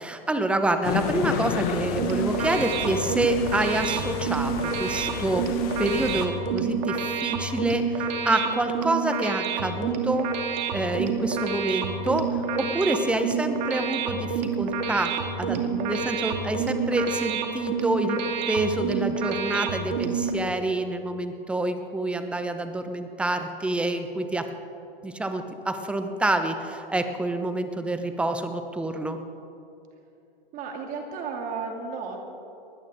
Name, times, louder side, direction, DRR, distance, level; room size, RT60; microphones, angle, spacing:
voice 1, 0.0-10.3 10.7-18.2 18.5-24.5 25.0-29.2, right 2 dB, 5° right, 8 dB, 0.9 m, -27 dB
sound 1, 0.8-6.3, left 8 dB, 30° left, 1.6 m, -31 dB
sound 2, 1.8-20.3, right 6 dB, 45° right, 2.3 m, -28 dB
voice 2, 30.5-32.2, right 5 dB, 25° right, 3 dB, 2.3 m, -33 dB
22.0 x 17.0 x 3.7 m, 2.7 s
hypercardioid pair, 120°, 29 cm